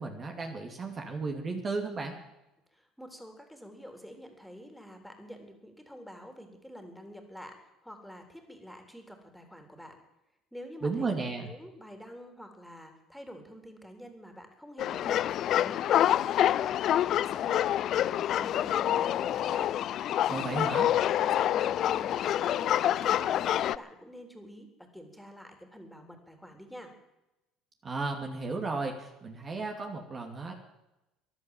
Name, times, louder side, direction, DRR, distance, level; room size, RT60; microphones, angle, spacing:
voice 1, 0.0-2.1 10.8-11.5 20.3-20.9 27.8-30.5, right 3 dB, 35° right, 3 dB, 2.6 m, -34 dB
voice 2, 2.7-7.6 7.8-10.0 10.5-11.1 11.5-15.2 15.5-17.6 17.9-19.7 20.4-26.9, equal, ahead, 4 dB, 3.6 m, -47 dB
sound 1, 14.8-23.8, left 11 dB, 55° left, 0.4 m, -27 dB
14.0 x 11.0 x 9.1 m, 0.93 s
hypercardioid pair, 75°, 0 cm